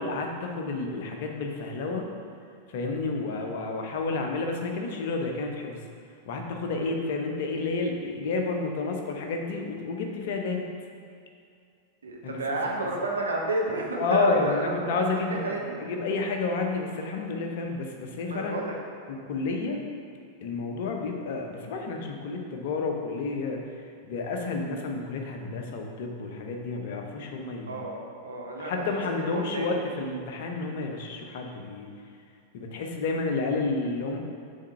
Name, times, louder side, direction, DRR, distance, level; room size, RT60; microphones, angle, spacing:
voice 1, 0.0-2.1 2.7-5.8 6.3-10.7 12.2-12.9 13.9-18.6 19.3-19.8 20.4-27.8 28.6-31.9 32.5-34.2, left 3 dB, 55° left, 2 dB, 0.8 m, -30 dB
voice 2, 12.0-14.8 15.4-15.7 18.3-18.7 27.7-28.9 29.3-29.7, right 2 dB, 70° right, -1 dB, 1.0 m, -31 dB
7.5 x 3.6 x 5.5 m, 2.3 s
figure-of-eight pair, 90°, 0 cm